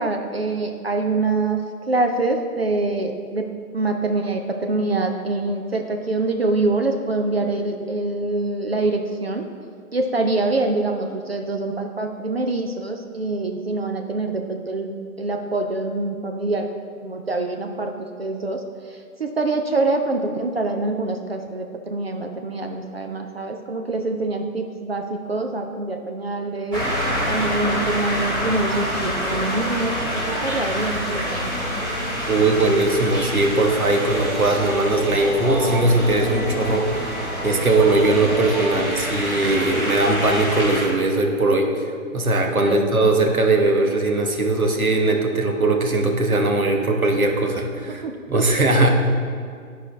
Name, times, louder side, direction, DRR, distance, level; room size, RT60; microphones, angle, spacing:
voice 1, 0.0-1.6 1.9-3.5 3.7-9.4 9.9-16.7 17.0-26.9 27.3-31.5 42.6-42.9 47.9-48.6, right 2 dB, 45° right, 4 dB, 0.6 m, -25 dB
sound 1, 26.7-40.9, equal, 10° right, 1.6 m, -26 dB
voice 2, 32.3-41.9 42.1-48.9, right 2 dB, 75° right, 3 dB, 1.3 m, -20 dB
11.0 x 5.0 x 3.9 m, 2.1 s
figure-of-eight pair, 145°, 43 cm